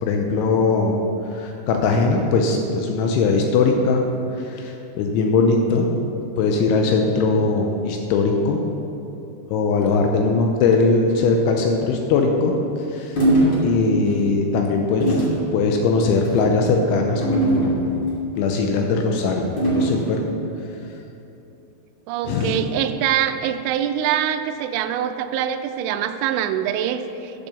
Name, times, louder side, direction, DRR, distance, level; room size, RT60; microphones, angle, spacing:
voice 1, 0.0-1.0 1.3-4.0 4.4-5.9 6.4-8.6 9.5-12.5 12.9-13.2 13.6-18.0 18.4-20.2 22.3-22.6, left 4 dB, 85° left, 2 dB, 3.1 m, -20 dB
sound 1, 13.2-13.6 14.1-14.2 15.0-15.4 16.2-16.5 17.2-18.1 19.6-20.1, right 1 dB, 30° left, 2.5 m, -20 dB
voice 2, 22.1-27.5, right 10 dB, 90° right, 7 dB, 2.5 m, -24 dB
12.0 x 6.9 x 7.0 m, 2.9 s
omnidirectional pair, 5.6 m